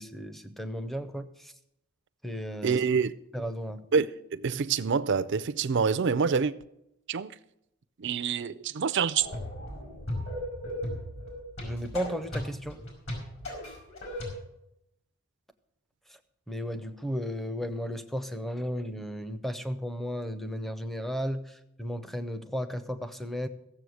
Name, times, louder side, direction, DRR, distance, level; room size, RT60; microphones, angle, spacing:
voice 1, 0.0-1.5 2.2-2.8 3.3-3.8 11.6-12.8 16.5-23.5, equal, ahead, 0.6 m, -34 dB
voice 2, 2.6-3.1 3.9-4.1 4.3-6.5 7.1-7.3 8.0-9.3, right 6 dB, 55° right, 0.5 m, -26 dB
sound 1, 9.1-14.3, left 1 dB, 60° left, 5.2 m, -37 dB
15.5 x 7.5 x 6.4 m
head